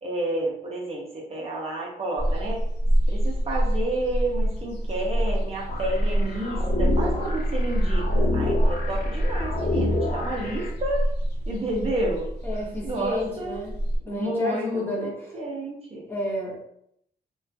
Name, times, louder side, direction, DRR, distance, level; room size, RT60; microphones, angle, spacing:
voice 1, 0.0-2.6 3.1-11.0 11.5-12.3 12.8-13.6 14.1-16.1, right 1 dB, 35° right, -3 dB, 0.5 m, -30 dB
sound 1, 2.2-14.0, right 1 dB, 90° left, 0.8 m, -26 dB
sound 2, 5.7-10.7, left 2 dB, 55° left, 0.5 m, -29 dB
voice 2, 12.4-13.8 14.0-15.4 16.1-16.6, left 1 dB, 15° left, -5 dB, 0.7 m, -31 dB
2.4 x 2.2 x 2.6 m, 0.71 s
wide cardioid pair, 155°, 17 cm